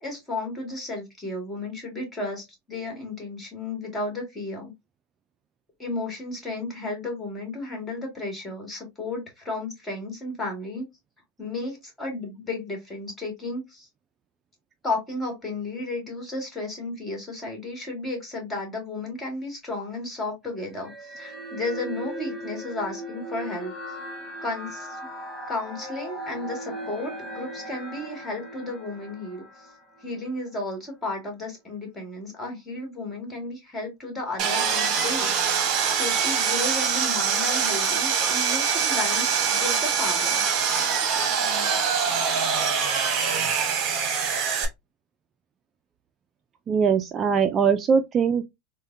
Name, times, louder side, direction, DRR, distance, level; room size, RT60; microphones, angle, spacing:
voice 1, 0.0-4.7 5.8-10.9 11.4-13.9 14.8-23.7 24.4-25.0 25.5-29.7 30.0-35.3 35.9-40.4, left 2 dB, 15° left, 1.7 m, -33 dB
sound 1, 20.8-30.3, equal, 5° right, 1.2 m, -38 dB
Sawing, 34.4-44.7, right 6 dB, 45° right, 0.9 m, -24 dB
voice 2, 46.7-48.4, right 6 dB, 30° right, 0.3 m, -21 dB
3.7 x 2.1 x 2.5 m
supercardioid pair, 120°, 0 cm